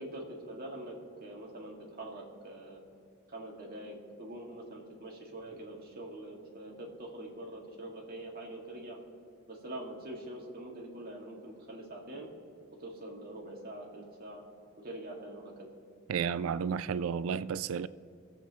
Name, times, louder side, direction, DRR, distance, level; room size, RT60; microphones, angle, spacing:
voice 1, 0.0-2.8 3.3-9.0 9.5-12.3 12.8-14.4 14.8-15.7, right 1 dB, 50° right, 2.2 m, -44 dB
voice 2, 16.1-17.9, right 7 dB, 75° right, 0.4 m, -32 dB
23.0 x 8.2 x 3.1 m
head